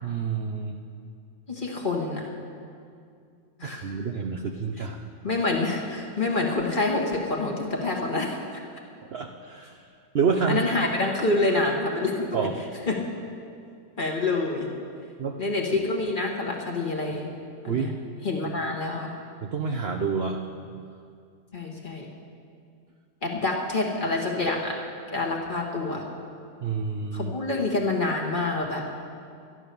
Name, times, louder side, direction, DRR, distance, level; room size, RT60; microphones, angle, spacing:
voice 1, 0.0-0.8 3.6-5.0 9.1-9.8 10.1-10.6 12.3-12.5 15.2-15.4 17.7-17.9 19.4-20.5 26.6-27.3, right 5 dB, 65° right, 2 dB, 0.6 m, -28 dB
voice 2, 1.5-2.3 3.6-3.9 5.2-8.4 10.5-12.4 12.9-13.0 14.0-14.7 15.4-17.4 17.6-17.9 18.2-19.1 21.5-22.1 23.2-24.8 25.1-26.0 27.1-28.8, left 2 dB, 30° left, -1 dB, 1.4 m, -27 dB
12.5 x 11.0 x 6.8 m, 2.4 s
omnidirectional pair, 1.9 m